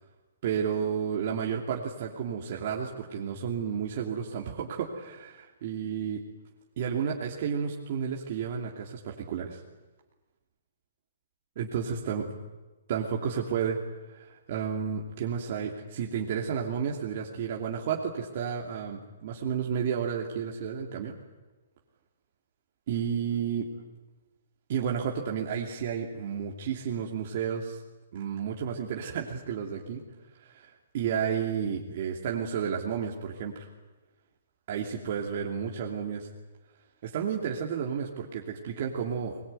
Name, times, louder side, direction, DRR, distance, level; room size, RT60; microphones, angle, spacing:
voice 1, 0.4-6.2 6.8-9.6 11.6-12.3 12.9-13.8 14.1-21.1 22.9-23.7 24.7-27.8 28.1-30.0 30.4-33.7 34.7-36.3 37.0-39.4, right 7 dB, 45° right, -1 dB, 3.0 m, -32 dB
22.0 x 21.5 x 9.2 m, 1.2 s
hypercardioid pair, 155°, 0 cm